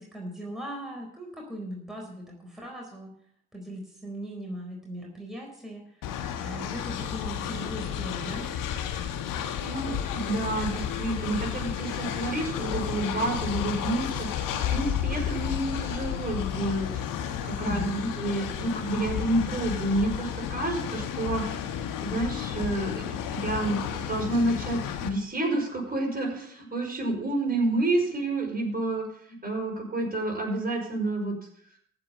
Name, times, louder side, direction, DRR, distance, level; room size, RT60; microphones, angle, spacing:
voice 1, 0.0-3.1 3.5-5.8 6.4-8.5 17.6-18.1, right 1 dB, ahead, -2 dB, 4.2 m, -37 dB
Train, 6.0-25.1, left 9 dB, 60° left, 1.5 m, -32 dB
voice 2, 9.6-17.8 18.2-21.5 22.0-29.1 29.4-31.4, right 2 dB, 25° right, 0 dB, 5.3 m, -29 dB
14.5 x 5.6 x 8.4 m, 0.67 s
figure-of-eight pair, 40°, 36 cm